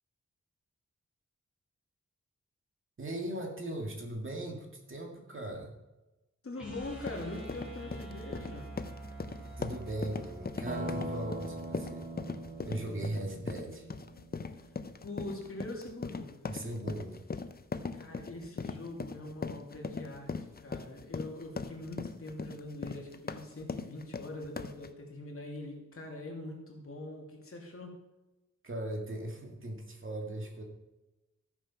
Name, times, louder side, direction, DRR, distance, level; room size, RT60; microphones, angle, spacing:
voice 1, 3.0-5.8 9.6-12.1 12.6-13.9 16.4-17.2 28.6-30.6, right 1 dB, 45° right, 1 dB, 2.2 m, -38 dB
voice 2, 6.4-8.7 15.0-16.3 17.9-28.0, left 2 dB, 50° left, 0 dB, 2.7 m, -43 dB
sound 1, 6.5-12.6, right 2 dB, 5° right, 3.6 m, -47 dB
sound 2, 6.8-24.9, left 4 dB, 35° left, 0.6 m, -40 dB
sound 3, 10.7-15.0, right 1 dB, 25° right, 1.3 m, -41 dB
13.5 x 7.3 x 5.6 m, 1.0 s
wide cardioid pair, 135°, 29 cm